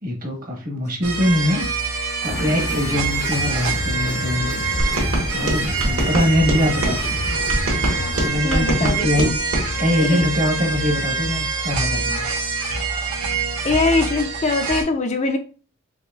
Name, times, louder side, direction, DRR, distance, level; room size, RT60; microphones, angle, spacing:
voice 1, 0.0-1.9 2.2-4.5 5.3-7.0 8.2-9.3 9.8-12.2, left 1 dB, 40° right, 2 dB, 1.0 m, -22 dB
sound 1, 1.0-14.8, right 4 dB, 85° right, 1.2 m, -25 dB
sound 2, 2.2-8.3, left 2 dB, 70° left, 0.7 m, -30 dB
sound 3, 4.8-7.0 7.5-9.7, right 1 dB, 65° right, 1.6 m, -23 dB
voice 2, 8.4-9.4 10.1-10.3 13.6-15.4, left 3 dB, 30° left, 6 dB, 0.4 m, -22 dB
5.4 x 2.9 x 2.3 m, 0.37 s
head